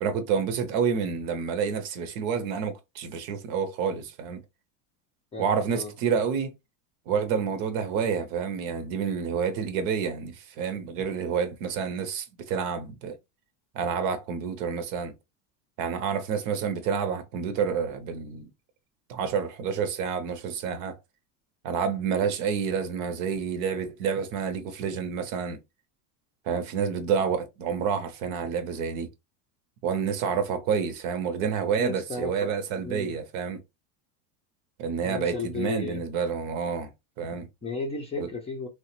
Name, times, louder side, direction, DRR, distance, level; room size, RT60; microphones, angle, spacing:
voice 1, 0.0-4.4 5.4-6.5 7.1-13.2 13.7-15.1 15.8-18.5 19.1-21.0 21.6-25.6 26.4-29.1 29.8-33.6 34.8-36.9 37.2-37.5 38.2-38.3, right 6 dB, 65° right, 0.8 m, -29 dB
voice 2, 5.3-5.9 31.8-33.2 35.0-36.0 37.6-38.7, left 3 dB, 15° left, 0.5 m, -34 dB
3.1 x 2.1 x 3.0 m
supercardioid pair, 135°, 42 cm